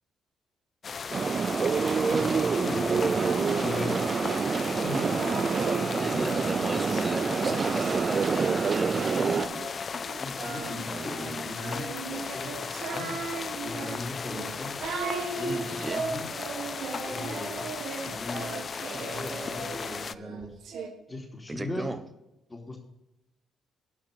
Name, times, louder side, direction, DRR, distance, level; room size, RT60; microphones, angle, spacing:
sound 1, 0.8-20.2, left 6 dB, 45° left, 0.3 m, -36 dB
sound 2, 1.1-9.5, right 5 dB, 40° right, 0.4 m, -27 dB
voice 1, 2.1-4.1 4.5-6.7 7.4-7.6 10.2-13.2 13.6-14.7 15.4-16.3 16.9-17.7 18.0-18.6 18.9-20.5 21.1-21.9 22.5-22.8, left 2 dB, 20° left, 0 dB, 2.9 m, -38 dB
Singing, 2.8-5.9 6.4-20.9, right 5 dB, 75° right, 1.5 m, -38 dB
voice 2, 6.0-9.6 10.9-11.5 15.7-16.0 21.5-22.0, right 2 dB, 20° right, 9 dB, 1.2 m, -37 dB
10.5 x 5.8 x 6.6 m, 0.91 s
cardioid pair, 90°, 0 cm